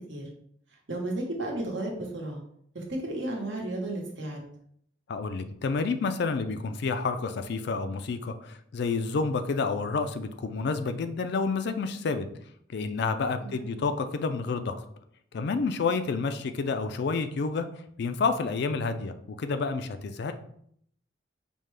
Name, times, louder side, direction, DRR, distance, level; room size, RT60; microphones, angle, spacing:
voice 1, 0.9-2.4 2.7-4.4 13.4-13.8, right 1 dB, 90° right, -1 dB, 1.1 m, -33 dB
voice 2, 5.1-12.3 12.7-14.7 15.3-17.7 18.0-20.3, left 4 dB, 65° left, 8 dB, 0.4 m, -29 dB
5.3 x 2.2 x 3.2 m, 0.67 s
head